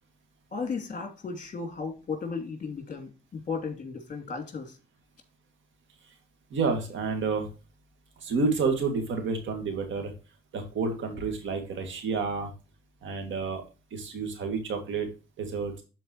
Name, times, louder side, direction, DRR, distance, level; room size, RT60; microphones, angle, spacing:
voice 1, 0.5-4.8, left 5 dB, 40° left, 4 dB, 2.7 m, -35 dB
voice 2, 6.5-7.5 8.2-10.1 10.5-12.5 13.0-13.6 13.9-15.1 15.4-15.8, right 4 dB, 70° right, 4 dB, 2.2 m, -29 dB
12.5 x 4.5 x 3.0 m, 0.32 s
cardioid pair, 90°, 20 cm